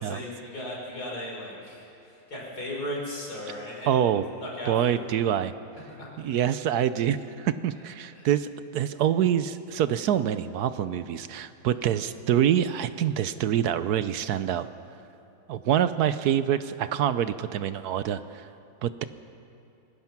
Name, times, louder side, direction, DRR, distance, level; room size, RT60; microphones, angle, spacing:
voice 1, 0.0-4.0 4.4-5.1 5.9-6.1 8.1-8.3, left 1 dB, 50° left, -3 dB, 5.5 m, -36 dB
voice 2, 3.9-4.3 4.7-5.5 6.2-14.7 15.5-18.5 18.8-19.0, right 10 dB, 70° right, 13 dB, 1.0 m, -26 dB
25.0 x 20.0 x 5.9 m, 2.8 s
omnidirectional pair, 2.1 m